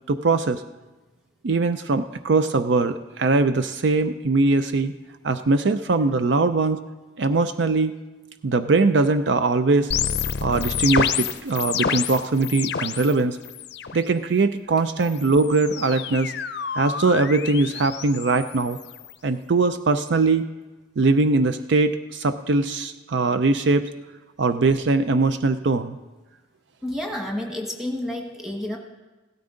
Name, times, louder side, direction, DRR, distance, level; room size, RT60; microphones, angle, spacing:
voice 1, 0.1-0.6 1.4-4.9 5.2-6.8 7.2-8.0 8.4-9.9 10.4-13.4 13.9-16.3 16.8-18.8 19.2-20.4 21.0-23.9 24.4-26.0, right 3 dB, 65° right, 10 dB, 0.5 m, -21 dB
sound 1, 9.9-13.1 13.4-14.0 15.0-19.1, left 7 dB, 55° left, 0.5 m, -28 dB
voice 2, 26.8-28.8, left 1 dB, 5° right, 0 dB, 1.4 m, -30 dB
16.5 x 13.0 x 3.8 m, 1.2 s
head